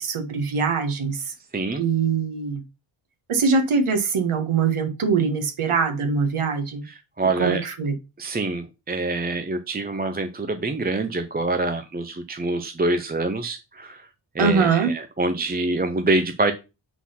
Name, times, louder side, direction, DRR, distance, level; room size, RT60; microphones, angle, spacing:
voice 1, 0.0-1.3 1.8-2.6 3.3-6.8 7.4-7.9 14.4-14.9, right 5 dB, 80° right, 1.6 m, -23 dB
voice 2, 1.5-1.9 6.8-7.6 8.2-14.1 14.3-16.5, right 2 dB, 20° right, 0.6 m, -25 dB
8.4 x 4.0 x 5.7 m
wide cardioid pair, 170°, 50 cm